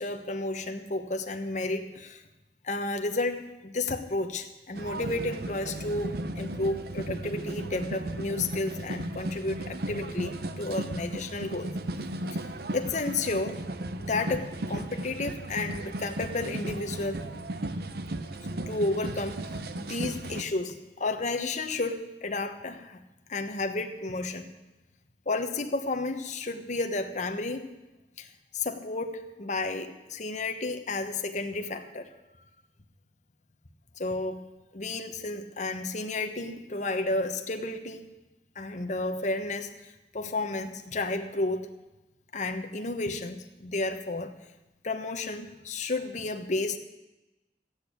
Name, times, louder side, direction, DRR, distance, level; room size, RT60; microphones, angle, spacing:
voice 1, 0.0-2.2 2.6-11.7 12.3-12.4 12.7-13.6 14.0-17.2 18.7-23.0 23.3-24.5 25.3-27.7 28.2-32.1 34.0-34.4 34.7-38.1 38.5-41.7 42.3-44.3 44.8-46.8, left 2 dB, 45° left, 6 dB, 1.1 m, -32 dB
sound 1, 4.7-20.4, right 1 dB, 60° right, 0.8 m, -35 dB
14.5 x 8.3 x 8.6 m, 1.0 s
head